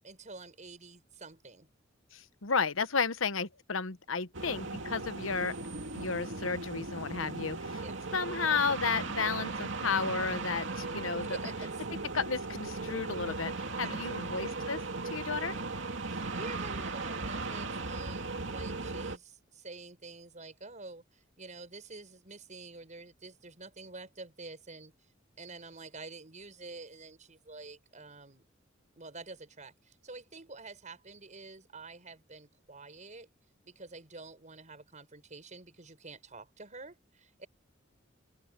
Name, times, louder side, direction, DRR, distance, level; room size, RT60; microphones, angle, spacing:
voice 1, 0.0-1.7 7.8-8.0 11.2-11.8 13.8-14.5 16.3-24.9 25.4-28.5 29.0-33.3 33.6-37.5, right 3 dB, 40° right, 5.7 m, -48 dB
voice 2, 2.1-5.5 5.9-7.8 8.1-11.4 11.9-14.8 15.1-15.6, left 5 dB, 85° left, 1.1 m, -33 dB
sound 1, 4.3-19.2, right 3 dB, 65° right, 2.7 m, -37 dB
open air
head